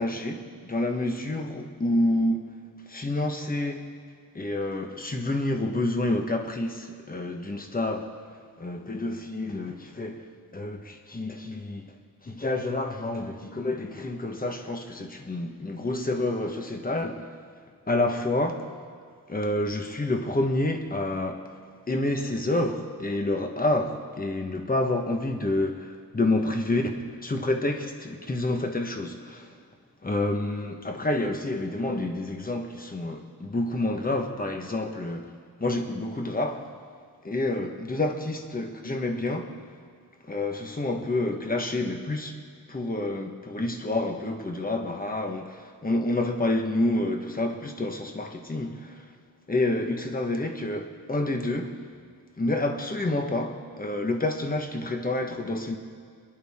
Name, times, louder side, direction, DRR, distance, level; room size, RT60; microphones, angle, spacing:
voice 1, 0.0-2.6 2.9-3.9 4.3-8.1 8.6-11.9 12.2-17.4 17.9-18.7 19.3-21.5 21.9-29.5 30.0-35.3 35.6-36.7 37.2-39.5 40.2-42.4 42.7-49.1 49.5-51.8 52.4-55.8, left 2 dB, 25° left, 1.3 m, -28 dB
28.5 x 11.0 x 3.7 m
wide cardioid pair, 150°, 37 cm